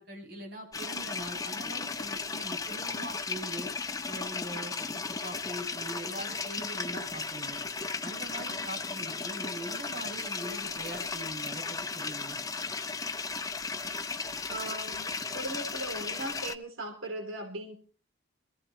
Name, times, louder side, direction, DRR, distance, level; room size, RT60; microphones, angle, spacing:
voice 1, 0.0-3.7 4.1-7.6 8.0-12.4, right 1 dB, 50° right, 1 dB, 6.9 m, -42 dB
sound 1, 0.7-16.6, left 4 dB, 20° left, 0.6 m, -35 dB
voice 2, 14.5-17.8, right 1 dB, 90° right, 3 dB, 3.0 m, -38 dB
25.5 x 15.5 x 3.0 m, 0.40 s
head